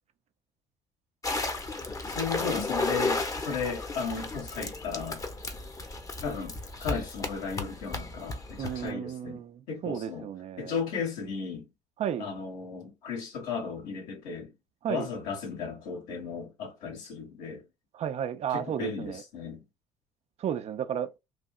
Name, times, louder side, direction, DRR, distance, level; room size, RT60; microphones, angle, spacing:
sound 1, 1.2-8.9, left 2 dB, 25° left, 0.9 m, -34 dB
voice 1, 2.1-5.2 6.2-9.4 9.7-10.3 10.6-11.7 12.2-14.5 14.9-17.6 18.5-19.6, left 5 dB, 75° left, 1.7 m, -35 dB
voice 2, 8.6-10.8 12.0-12.3 14.8-15.1 17.9-19.2 20.4-21.1, right 9 dB, 50° right, 0.5 m, -33 dB
3.3 x 2.7 x 2.4 m
hypercardioid pair, 60°, 14 cm